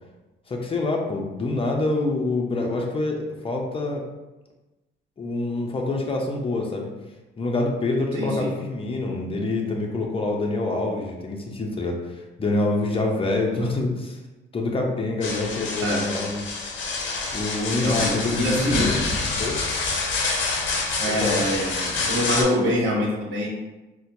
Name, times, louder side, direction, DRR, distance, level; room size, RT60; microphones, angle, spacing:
voice 1, 0.5-4.0 5.2-6.9 7.4-12.0 12.4-14.2 14.5-16.4 17.3-19.0 19.4-19.6 21.2-21.4, left 2 dB, 30° left, 1 dB, 0.6 m, -26 dB
voice 2, 8.1-8.5 13.5-13.7 15.8-16.0 17.8-18.9 21.0-23.5, equal, 70° right, -3 dB, 1.1 m, -25 dB
sound 1, 15.2-22.4, left 3 dB, 75° left, 0.7 m, -27 dB
4.2 x 2.2 x 2.7 m, 1.1 s
cardioid pair, 90°, 20 cm